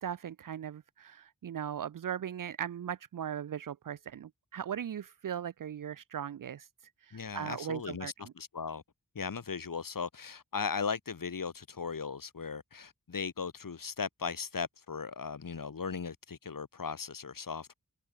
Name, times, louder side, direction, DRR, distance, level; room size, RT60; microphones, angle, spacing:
voice 1, 0.0-6.7 7.1-8.1, right 9 dB, 75° right, 0.5 m, -38 dB
voice 2, 7.1-8.8 9.1-17.7, left 5 dB, 80° left, 1.7 m, -37 dB
wide cardioid pair, 75°, 33 cm